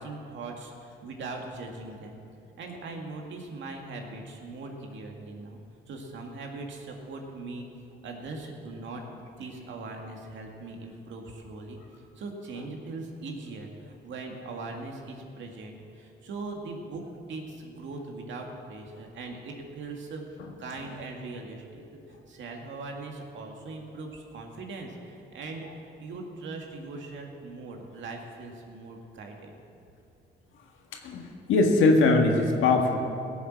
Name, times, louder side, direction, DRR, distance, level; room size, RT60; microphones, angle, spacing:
voice 1, 0.0-2.2 2.6-5.6 5.9-7.7 8.0-11.8 12.2-17.0 17.3-20.2 20.6-21.8 22.3-29.5, right 3 dB, 70° right, 2 dB, 2.1 m, -40 dB
voice 2, 30.9-33.2, left 3 dB, 85° left, 2 dB, 1.7 m, -22 dB
17.0 x 7.3 x 7.5 m, 2.5 s
cardioid pair, 90°, 20 cm